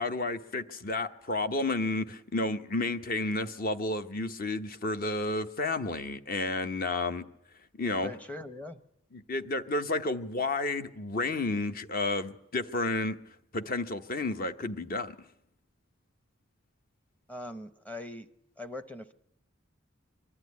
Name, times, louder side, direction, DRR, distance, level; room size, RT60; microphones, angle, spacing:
voice 1, 0.0-7.2 7.8-8.1 9.1-13.2 13.5-15.2, left 2 dB, 40° left, 10 dB, 0.9 m, -31 dB
voice 2, 8.0-8.8 17.3-18.3 18.6-19.1, left 1 dB, 5° left, 10 dB, 0.8 m, -41 dB
23.5 x 12.0 x 9.4 m, 0.77 s
head